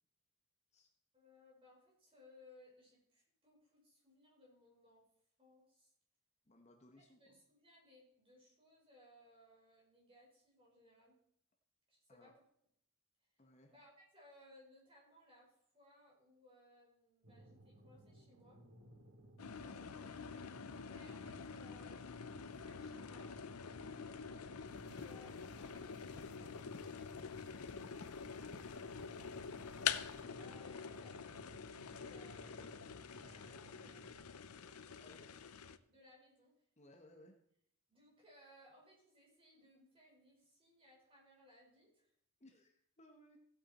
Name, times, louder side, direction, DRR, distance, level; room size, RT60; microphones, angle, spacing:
voice 1, 1.1-5.1 5.4-5.9 7.0-11.2 11.9-12.4 13.7-18.6 20.9-23.3 24.9-26.9 29.4-34.1 35.9-36.5 37.9-42.1, left 1 dB, 25° right, -3 dB, 4.8 m, -65 dB
voice 2, 6.5-7.2 12.1-12.3 13.4-13.7 19.6-20.1 24.2-24.5 27.5-27.8 34.6-34.7 35.0-35.4 36.8-37.4 42.4-43.4, left 1 dB, 30° left, 3 dB, 1.2 m, -63 dB
sound 1, 17.2-34.2, right 1 dB, 70° right, 5.4 m, -61 dB
sound 2, 19.4-35.8, left 7 dB, 85° left, 0.7 m, -46 dB
sound 3, 24.6-30.2, left 3 dB, 50° left, 0.8 m, -59 dB
15.5 x 8.5 x 4.3 m, 0.68 s
head